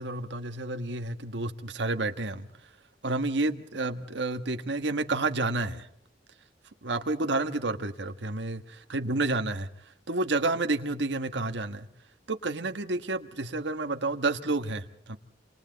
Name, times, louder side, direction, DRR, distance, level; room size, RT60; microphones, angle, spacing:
voice 1, 0.0-2.5 3.0-5.9 6.8-9.7 10.1-11.9 12.3-15.2, right 2 dB, 75° right, 1.5 m, -30 dB
28.0 x 27.5 x 4.0 m
head